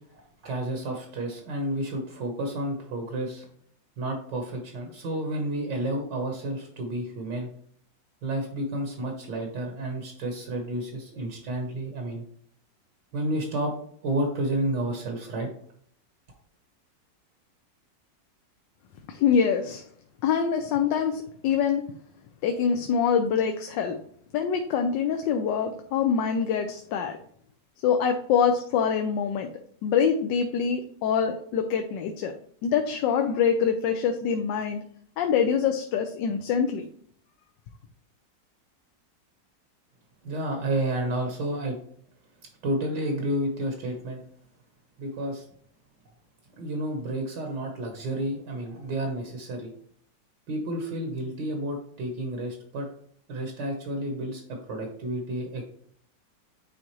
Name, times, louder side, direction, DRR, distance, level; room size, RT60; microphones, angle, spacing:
voice 1, 0.1-3.5 4.0-7.5 8.2-12.2 13.1-13.7 14.0-15.5 40.2-41.7 42.6-44.2 45.0-45.4 46.6-49.7 50.5-52.9 53.3-54.4 54.7-55.7, right 1 dB, 75° right, 2 dB, 1.8 m, -31 dB
voice 2, 19.1-19.8 20.2-21.9 22.4-24.0 24.3-27.2 27.8-29.5 29.8-32.3 32.6-34.8 35.2-36.9, left 7 dB, 80° left, 5 dB, 1.3 m, -25 dB
9.7 x 3.6 x 3.0 m, 0.62 s
omnidirectional pair, 2.0 m